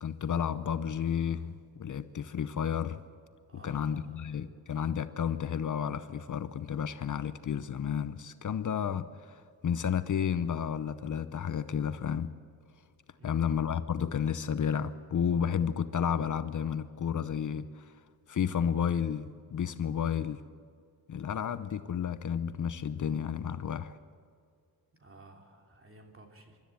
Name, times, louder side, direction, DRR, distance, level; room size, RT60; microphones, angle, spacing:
voice 1, 0.0-3.0 3.5-12.3 13.2-17.9 18.3-20.4 21.1-24.0, left 8 dB, 55° left, 12 dB, 0.8 m, -32 dB
voice 2, 3.5-4.2 13.2-13.5 25.0-26.6, right 2 dB, 35° right, 2 dB, 3.0 m, -54 dB
25.5 x 12.5 x 8.3 m, 2.2 s
wide cardioid pair, 120°, 37 cm